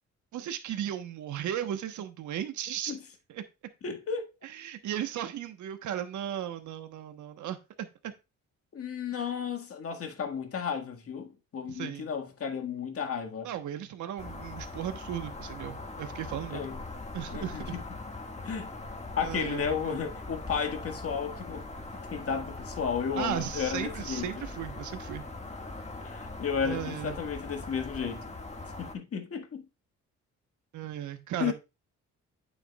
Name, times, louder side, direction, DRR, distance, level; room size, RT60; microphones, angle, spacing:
voice 1, 0.3-3.0 3.3-3.4 4.6-8.1 9.1-9.2 11.7-12.1 13.4-16.6 17.1-17.7 19.2-20.0 23.2-25.2 26.6-27.2 30.7-31.5, right 10 dB, 75° right, 1.1 m, -36 dB
voice 2, 3.8-4.3 8.7-13.5 16.5-16.8 17.3-17.8 18.4-18.7 19.2-21.6 22.1-24.4 26.0-28.3 28.8-29.7 31.4-31.5, left 6 dB, 50° left, 1.7 m, -33 dB
sound 1, 14.2-28.9, left 2 dB, 20° left, 1.7 m, -41 dB
9.1 x 7.0 x 2.3 m
cardioid pair, 90°, 30 cm